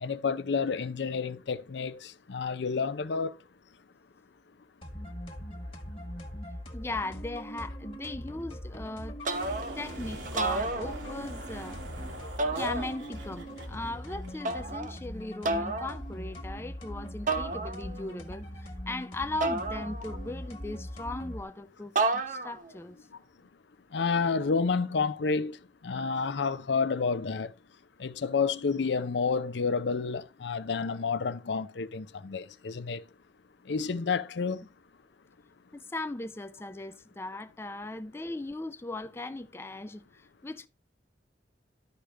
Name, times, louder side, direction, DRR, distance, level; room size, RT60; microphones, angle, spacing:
voice 1, 0.0-3.4 23.9-25.6 25.8-27.5 28.0-33.0 33.7-34.6, left 5 dB, 70° left, 0.5 m, -30 dB
sound 1, 4.8-21.4, equal, 30° left, 1.5 m, -41 dB
voice 2, 6.7-9.2 9.7-11.8 12.5-23.0 35.7-40.7, left 2 dB, 15° left, 0.4 m, -38 dB
sound 2, 9.2-9.9 10.3-11.4 12.4-13.3 14.4-15.0 15.4-16.0 17.3-18.1 19.4-20.4 22.0-22.7, right 3 dB, 45° right, 0.8 m, -31 dB
sound 3, 9.3-14.8, right 1 dB, 80° right, 1.9 m, -45 dB
12.0 x 5.0 x 3.3 m
head